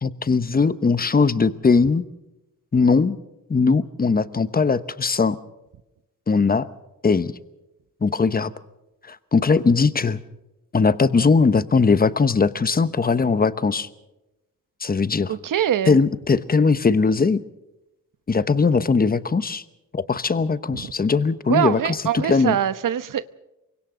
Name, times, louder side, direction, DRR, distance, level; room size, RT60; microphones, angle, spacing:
voice 1, 0.0-2.0 2.7-3.2 3.5-5.4 6.3-6.7 7.0-7.3 8.0-8.5 9.1-10.2 10.7-13.9 14.8-15.3 15.9-17.4 18.3-19.6 19.9-22.6, left 4 dB, 30° left, 1.1 m, -20 dB
voice 2, 15.3-16.0 20.7-20.9 21.5-23.4, right 10 dB, 75° right, 1.0 m, -23 dB
28.0 x 24.5 x 3.9 m
wide cardioid pair, 125°, 32 cm